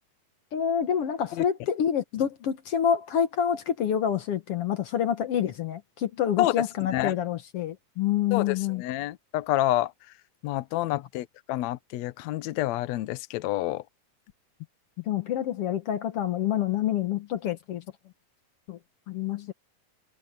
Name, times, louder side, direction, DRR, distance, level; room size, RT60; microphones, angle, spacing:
voice 1, 0.5-8.8 10.9-11.0 15.0-17.8 18.7-18.8 19.1-19.5, left 9 dB, 65° left, 1.5 m, -27 dB
voice 2, 8.3-9.9 10.4-13.8, left 15 dB, 80° left, 1.6 m, -28 dB
omnidirectional pair, 4.1 m